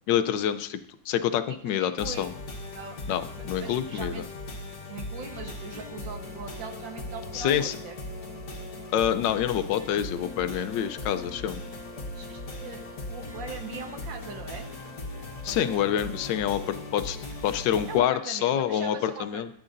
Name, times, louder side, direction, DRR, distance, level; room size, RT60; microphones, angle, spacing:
voice 1, 0.1-0.8 1.1-2.3 3.1-4.2 7.3-7.8 8.9-11.6 15.4-17.2 17.4-19.5, left 10 dB, 80° left, 11 dB, 1.3 m, -27 dB
voice 2, 1.5-2.3 2.7-3.0 3.4-4.3 4.9-8.0 11.9-12.8 13.1-14.7 15.5-15.8 17.9-19.5, right 5 dB, 85° right, 4 dB, 1.9 m, -41 dB
sound 1, 2.0-18.0, left 2 dB, 60° left, 1.8 m, -38 dB
13.5 x 9.6 x 2.6 m, 0.64 s
omnidirectional pair, 2.0 m